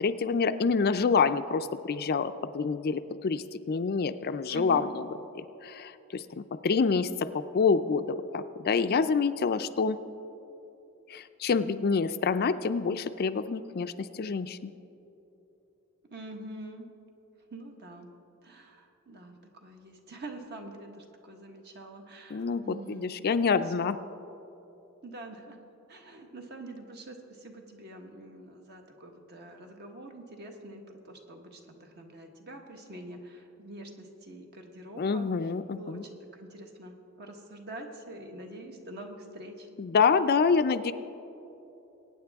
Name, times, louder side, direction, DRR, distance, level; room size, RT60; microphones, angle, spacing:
voice 1, 0.0-4.8 5.4-10.0 11.1-14.7 22.3-24.0 35.0-36.0 39.8-40.9, left 5 dB, 45° left, 11 dB, 0.4 m, -27 dB
voice 2, 4.5-4.8 16.1-16.9 17.5-18.1 18.4-23.9 25.0-25.6 25.9-39.7, right 2 dB, 50° right, 3 dB, 1.4 m, -45 dB
22.5 x 9.3 x 3.5 m, 2.9 s
head